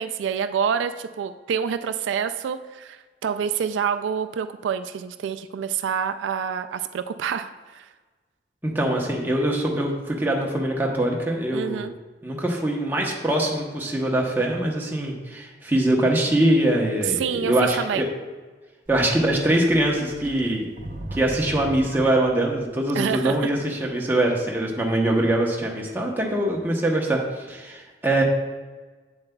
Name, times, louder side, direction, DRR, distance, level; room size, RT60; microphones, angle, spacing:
voice 1, 0.0-7.9 11.5-11.9 17.1-18.0 22.9-23.4, right 7 dB, 85° right, 9 dB, 0.3 m, -27 dB
voice 2, 8.6-11.8 12.2-18.1 18.9-20.7 21.1-28.2, right 1 dB, 10° right, -1 dB, 0.8 m, -23 dB
Sink (filling or washing), 18.9-22.6, right 1 dB, 45° right, 0.7 m, -37 dB
7.9 x 7.1 x 2.2 m, 1.3 s
head